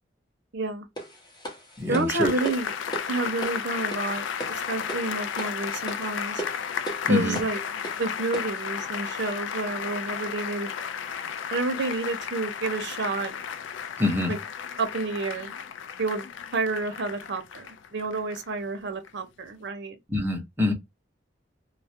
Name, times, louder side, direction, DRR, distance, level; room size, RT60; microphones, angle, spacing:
voice 1, 0.5-0.9 1.9-2.7 3.1-6.4 7.1-7.6 8.0-10.7 11.5-13.3 14.3-14.4 14.8-15.5 16.0-16.2 16.5-19.9, right 3 dB, 65° right, 0.6 m, -30 dB
sound 1, 1.0-8.7, right 1 dB, 25° left, 0.8 m, -39 dB
voice 2, 1.8-2.3 7.0-7.4 14.0-14.4 20.1-20.7, left 2 dB, 10° right, 0.7 m, -25 dB
sound 2, 2.1-18.6 19.0-19.1, left 7 dB, 75° left, 0.3 m, -34 dB
2.3 x 2.0 x 2.6 m
head